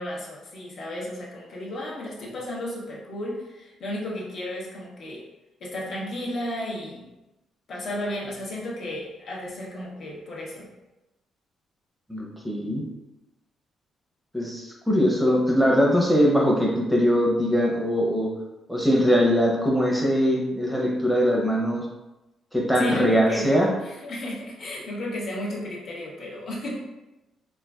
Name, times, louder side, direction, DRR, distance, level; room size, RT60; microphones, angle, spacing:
voice 1, 0.0-5.3 5.6-7.1 7.7-10.7 22.8-26.8, left 1 dB, 60° left, -4 dB, 0.8 m, -33 dB
voice 2, 12.1-12.8 14.3-18.3 18.7-21.9 22.5-23.7, equal, ahead, -2 dB, 0.7 m, -21 dB
3.1 x 2.4 x 2.3 m, 1.0 s
cardioid pair, 90°, 0 cm